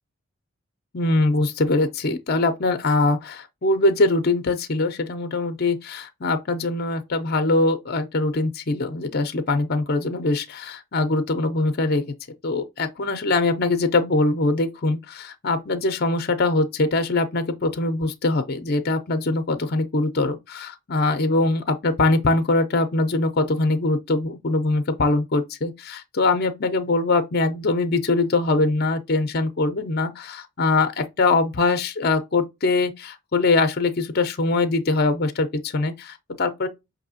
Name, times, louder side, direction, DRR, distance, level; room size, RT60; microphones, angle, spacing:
voice 1, 0.9-12.0 12.4-36.7, left 2 dB, 45° left, 0.5 m, -22 dB
5.8 x 2.7 x 2.7 m
head